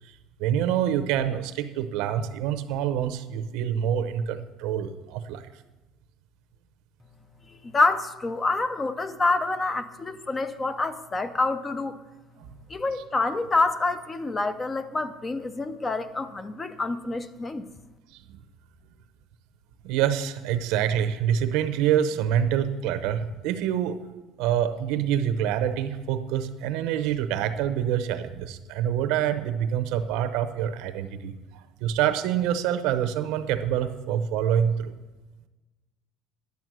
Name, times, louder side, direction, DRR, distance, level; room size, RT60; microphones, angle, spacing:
voice 1, 0.4-5.4 18.3-18.4 19.8-24.0 24.4-31.3 31.8-34.9, right 9 dB, 65° right, 10 dB, 0.8 m, -26 dB
voice 2, 7.6-12.0 12.7-17.6, left 3 dB, 15° left, 12 dB, 0.4 m, -27 dB
11.0 x 7.2 x 6.1 m, 1.1 s
cardioid pair, 170°, 0 cm